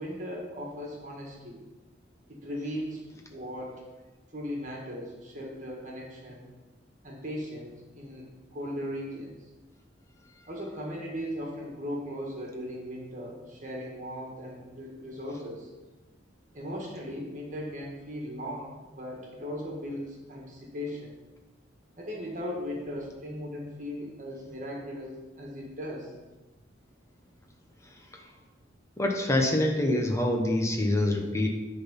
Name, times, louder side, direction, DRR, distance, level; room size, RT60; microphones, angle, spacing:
voice 1, 0.0-1.6 2.3-3.0 3.3-3.7 4.3-6.4 7.0-8.3 8.5-9.5 10.5-15.7 16.5-21.1 22.0-26.1, equal, 40° right, -2 dB, 1.8 m, -38 dB
voice 2, 29.0-31.5, left 1 dB, 15° left, 2 dB, 0.9 m, -25 dB
10.0 x 4.0 x 5.6 m, 1.2 s
head